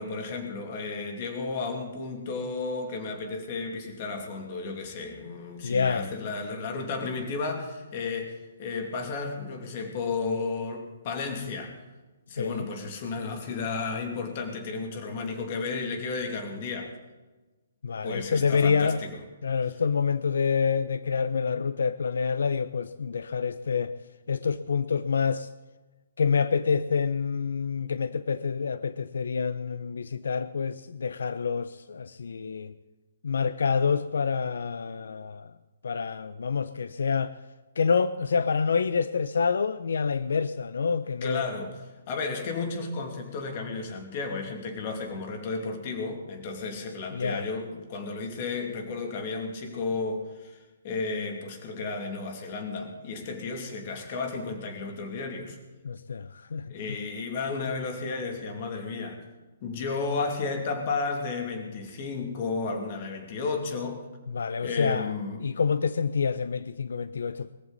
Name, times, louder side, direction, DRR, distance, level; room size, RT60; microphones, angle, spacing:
voice 1, 0.0-11.8 12.3-17.0 18.0-19.2 41.2-55.6 56.7-59.2 59.6-64.1 64.6-65.5, left 4 dB, 30° left, 2.6 m, -33 dB
voice 2, 5.6-6.1 12.4-12.7 17.8-19.0 19.4-23.9 24.3-25.5 26.2-32.7 33.2-35.5 35.8-37.4 37.8-41.5 47.1-47.5 55.8-56.7 64.3-65.1 65.4-67.5, left 5 dB, 85° left, 0.6 m, -27 dB
21.5 x 14.5 x 4.1 m
hypercardioid pair, 170°, 0 cm